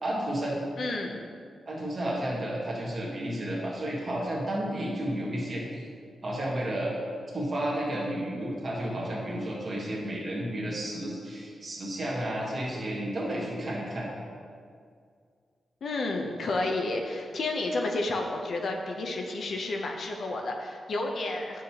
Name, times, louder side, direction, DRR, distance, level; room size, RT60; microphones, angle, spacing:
voice 1, 0.0-0.6 1.7-5.8 6.2-7.0 7.3-14.1, right 1 dB, 35° right, -3 dB, 1.4 m, -32 dB
voice 2, 0.8-1.2 15.8-21.6, left 2 dB, 50° left, 2 dB, 0.6 m, -31 dB
9.6 x 6.3 x 2.9 m, 2.2 s
wide cardioid pair, 180°, 0 cm